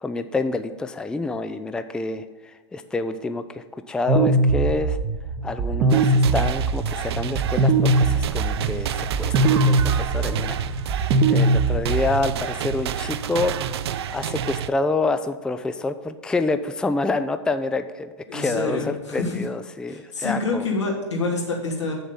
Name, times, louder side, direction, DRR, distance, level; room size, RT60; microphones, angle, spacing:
voice 1, 0.0-5.0 5.4-10.6 10.8-13.6 14.1-20.7, left 3 dB, 5° left, 10 dB, 0.4 m, -27 dB
sound 1, 4.1-12.4, right 2 dB, 35° right, 0.9 m, -21 dB
sound 2, 5.9-14.7, right 9 dB, 65° right, 0.5 m, -30 dB
voice 2, 18.3-19.4 19.9-21.9, left 3 dB, 90° left, -3 dB, 2.6 m, -27 dB
7.3 x 6.8 x 5.7 m, 1.3 s
hypercardioid pair, 105°, 14 cm